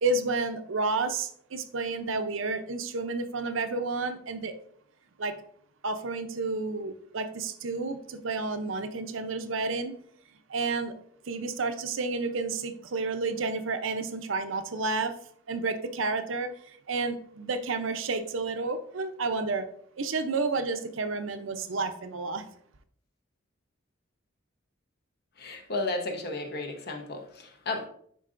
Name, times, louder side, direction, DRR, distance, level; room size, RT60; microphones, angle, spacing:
voice 1, 0.0-4.6 5.2-5.4 5.8-10.0 10.5-10.9 11.3-15.1 15.5-19.7 20.0-22.5, right 3 dB, 75° right, 9 dB, 0.6 m, -31 dB
voice 2, 25.4-27.9, left 2 dB, 50° left, 3 dB, 0.9 m, -33 dB
10.0 x 3.9 x 2.5 m, 0.63 s
head